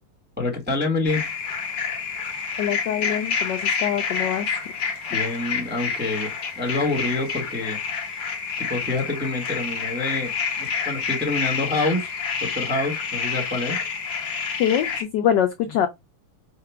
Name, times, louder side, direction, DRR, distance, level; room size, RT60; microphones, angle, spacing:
voice 1, 0.4-1.2 5.1-7.8 8.6-12.1 12.4-13.8, left 2 dB, 10° right, 0.7 m, -27 dB
sound 1, 1.0-15.0, left 5 dB, 55° left, 1.6 m, -28 dB
voice 2, 2.6-4.5 14.6-15.9, left 9 dB, 75° left, 1.0 m, -24 dB
4.8 x 2.2 x 4.5 m
omnidirectional pair, 2.4 m